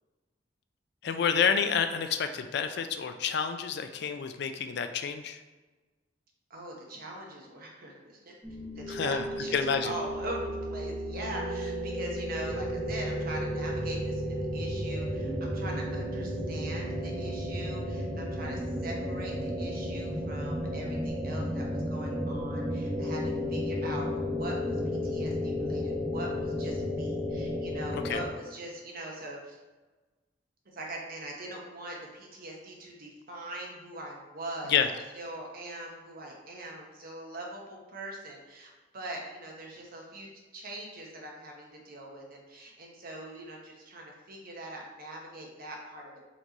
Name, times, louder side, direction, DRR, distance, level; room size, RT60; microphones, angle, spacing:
voice 1, 1.0-5.4 8.9-9.2 9.5-9.9 28.0-28.2 34.7-34.9, left 7 dB, 60° left, 8 dB, 0.4 m, -28 dB
voice 2, 6.5-24.8 25.0-29.6 30.7-40.3 40.5-46.2, right 1 dB, 50° right, -1 dB, 0.9 m, -42 dB
sound 1, 8.4-28.3, equal, 15° right, 1.1 m, -33 dB
4.3 x 3.0 x 3.9 m, 1.2 s
head